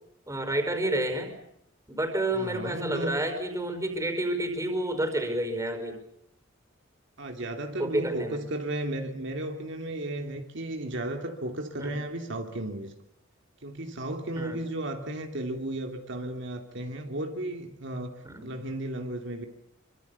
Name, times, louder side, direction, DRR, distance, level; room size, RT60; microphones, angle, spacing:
voice 1, 0.3-1.3 1.9-6.0 7.8-8.4 11.8-12.0 14.4-14.6 18.3-18.5, right 1 dB, 15° right, 7 dB, 5.2 m, -29 dB
voice 2, 2.3-3.2 7.2-12.9 13.6-18.1 18.4-19.5, right 1 dB, 65° right, 4 dB, 2.9 m, -34 dB
27.5 x 25.0 x 7.1 m, 0.79 s
head